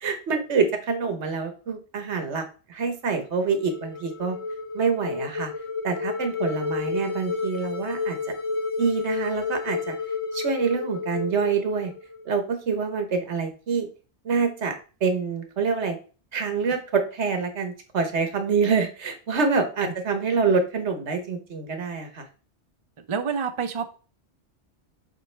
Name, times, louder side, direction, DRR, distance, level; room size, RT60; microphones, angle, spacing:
voice 1, 0.0-2.4 2.7-4.4 4.7-5.5 5.8-8.2 8.8-9.9 10.3-11.9 12.2-13.9 14.2-14.7 15.0-16.0 16.3-22.3, right 5 dB, 90° right, 6 dB, 1.5 m, -26 dB
sound 1, 3.2-12.4, left 4 dB, 30° left, 0.9 m, -31 dB
voice 2, 23.1-23.9, right 6 dB, 35° right, 7 dB, 0.6 m, -27 dB
7.9 x 4.3 x 3.3 m, 0.36 s
omnidirectional pair, 1.1 m